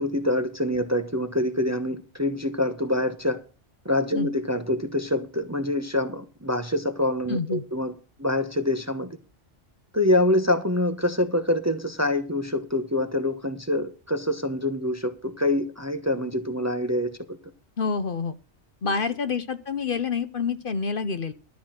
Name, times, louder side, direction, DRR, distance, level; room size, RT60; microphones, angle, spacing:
voice 1, 0.0-3.4 3.8-7.9 8.2-9.2 9.9-17.4, left 1 dB, 15° right, 0.8 m, -25 dB
voice 2, 7.3-7.6 17.8-18.4 18.8-21.3, left 5 dB, 55° left, 0.9 m, -27 dB
12.5 x 6.1 x 7.5 m
omnidirectional pair, 1.2 m